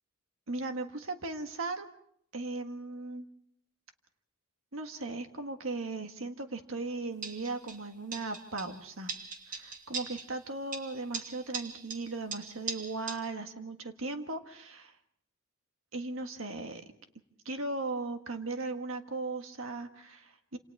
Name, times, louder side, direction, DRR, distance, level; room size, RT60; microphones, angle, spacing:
voice 1, 0.5-1.9 2.3-3.2 4.7-9.1 9.5-14.9 15.9-16.8 17.4-20.6, right 3 dB, 70° right, 6 dB, 1.7 m, -37 dB
sound 1, 7.2-7.8 8.1-8.8 9.1-10.4 10.7-13.2, right 5 dB, 40° right, 1.9 m, -41 dB
27.5 x 27.5 x 3.6 m, 0.68 s
head